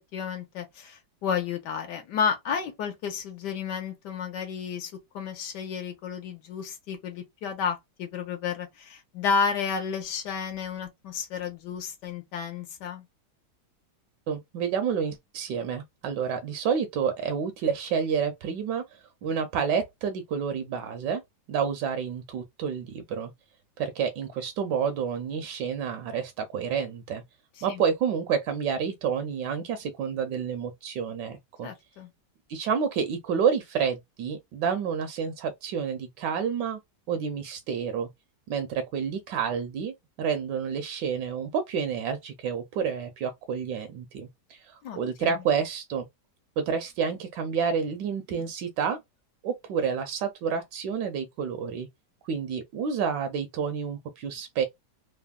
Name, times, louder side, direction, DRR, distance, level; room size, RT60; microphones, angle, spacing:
voice 1, 0.1-13.0 27.7-27.8 31.6-32.1 44.8-45.4, left 6 dB, 75° left, 1.3 m, -32 dB
voice 2, 14.3-18.8 19.2-21.2 21.5-23.3 23.8-27.2 27.6-31.7 32.5-36.8 37.1-38.1 38.5-46.1 46.6-49.0 49.4-51.9 52.2-54.6, right 7 dB, 80° right, 1.2 m, -29 dB
3.4 x 2.0 x 2.3 m
omnidirectional pair, 1.9 m